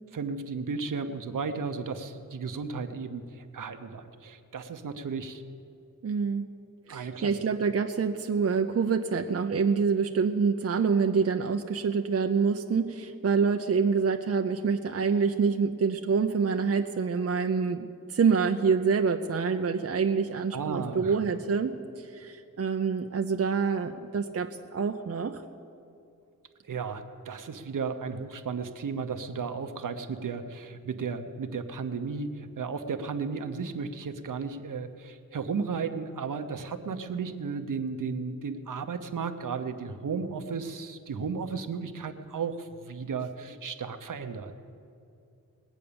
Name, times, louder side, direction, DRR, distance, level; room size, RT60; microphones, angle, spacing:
voice 1, 0.1-5.4 6.9-7.4 20.5-21.2 26.7-44.5, right 5 dB, 65° right, 8 dB, 1.0 m, -34 dB
voice 2, 6.0-6.5 6.9-25.4, right 5 dB, 45° right, 5 dB, 0.7 m, -26 dB
20.5 x 8.3 x 7.0 m, 2.6 s
cardioid pair, 65°, 34 cm